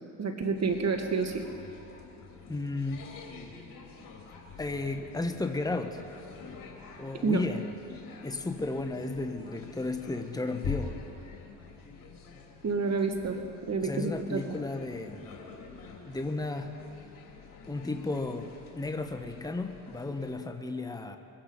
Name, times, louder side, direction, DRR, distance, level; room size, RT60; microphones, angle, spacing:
voice 1, 0.2-1.4 7.2-7.4 12.6-14.6, right 4 dB, 45° right, 4 dB, 1.6 m, -29 dB
sound 1, 0.6-20.3, left 5 dB, 65° left, 2.8 m, -46 dB
voice 2, 2.5-3.0 4.6-6.0 7.0-7.6 8.2-10.9 13.8-15.2 16.1-16.7 17.7-21.2, left 2 dB, 10° left, 6 dB, 1.2 m, -34 dB
23.5 x 8.9 x 5.2 m, 2.8 s
supercardioid pair, 60°, 36 cm